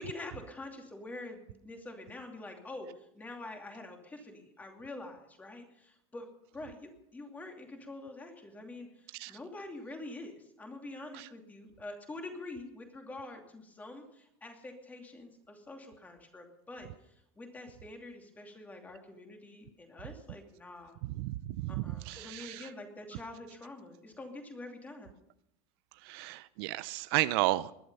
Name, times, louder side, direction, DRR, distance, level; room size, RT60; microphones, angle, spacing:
voice 1, 0.0-6.3 6.5-21.0 21.7-25.1, left 2 dB, 10° left, 3 dB, 2.7 m, -46 dB
voice 2, 21.1-22.7 26.0-27.7, right 18 dB, 60° right, 15 dB, 0.6 m, -33 dB
20.0 x 11.5 x 5.5 m, 0.80 s
supercardioid pair, 165°, 15 cm